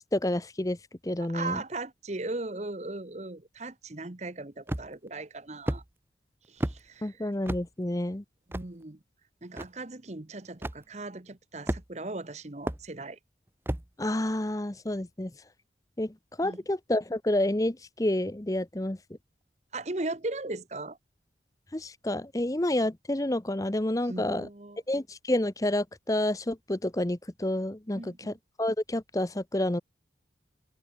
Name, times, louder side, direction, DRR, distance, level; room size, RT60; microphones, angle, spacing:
voice 1, 0.1-0.8 1.0-1.6 7.0-8.2 14.0-15.3 16.0-16.1 16.4-19.0 21.7-24.5 24.9-28.3 28.6-29.8, left 1 dB, 20° left, 0.8 m, -29 dB
voice 2, 1.2-5.8 6.5-7.3 8.5-9.0 9.4-13.2 16.4-16.6 19.7-21.0 24.0-24.8 27.9-28.4, right 2 dB, 40° right, 1.1 m, -38 dB
sound 1, 4.7-5.1 5.7-5.8 6.6-6.8 7.5-7.7 8.5-8.7 9.6-9.7 10.6-10.8 11.7-12.1 12.7-12.8 13.7-13.9, right 1 dB, 10° right, 0.7 m, -31 dB
head